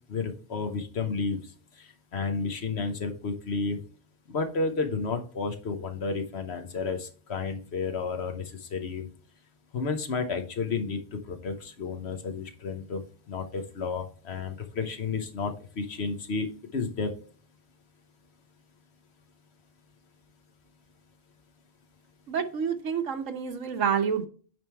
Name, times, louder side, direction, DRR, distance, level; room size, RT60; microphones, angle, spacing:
voice 1, 0.1-1.4 1.8-3.8 4.3-9.1 9.7-11.0 11.3-13.0 13.3-17.1, left 4 dB, 60° left, 5 dB, 1.1 m, -31 dB
voice 2, 22.3-24.3, right 7 dB, 85° right, 5 dB, 1.3 m, -28 dB
9.1 x 3.6 x 4.4 m, 0.42 s
omnidirectional pair, 1.3 m